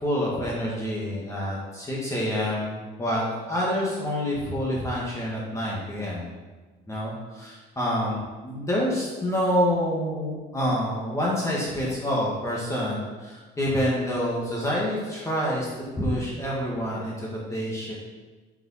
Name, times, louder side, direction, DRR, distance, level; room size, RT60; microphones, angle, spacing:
voice 1, 0.0-6.3 6.9-17.9, equal, 20° left, -5 dB, 2.1 m, -27 dB
7.6 x 5.3 x 5.9 m, 1.3 s
cardioid pair, 110°, 17 cm